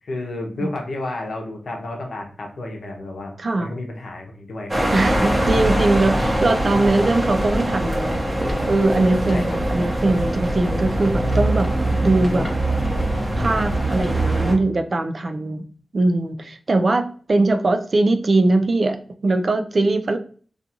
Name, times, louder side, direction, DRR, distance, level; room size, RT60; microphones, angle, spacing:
voice 1, 0.0-4.8 5.6-6.0 9.3-9.6, left 2 dB, 80° left, 2 dB, 0.7 m, -32 dB
voice 2, 3.4-3.7 4.9-8.2 8.7-11.7 12.0-12.5 13.4-15.6 15.9-20.2, right 2 dB, 60° right, 7 dB, 0.3 m, -21 dB
sound 1, 4.7-14.5, right 1 dB, 30° right, 0.9 m, -22 dB
2.4 x 2.4 x 2.8 m, 0.43 s
cardioid pair, 45°, 0 cm